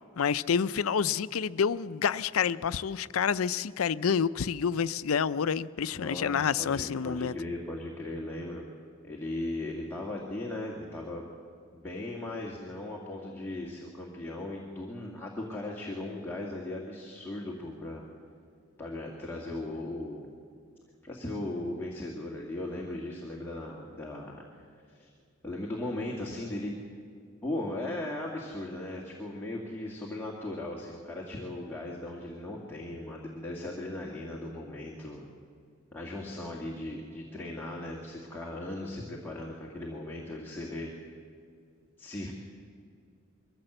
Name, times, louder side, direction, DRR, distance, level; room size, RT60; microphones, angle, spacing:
voice 1, 0.2-7.3, left 7 dB, 85° left, 0.5 m, -28 dB
voice 2, 5.9-8.6 9.0-11.2 11.7-18.1 18.8-20.3 21.0-24.6 24.9-25.1 25.4-26.7 27.4-35.3 35.9-40.9 42.0-42.3, left 1 dB, 10° left, 1.9 m, -37 dB
22.5 x 15.0 x 7.9 m
head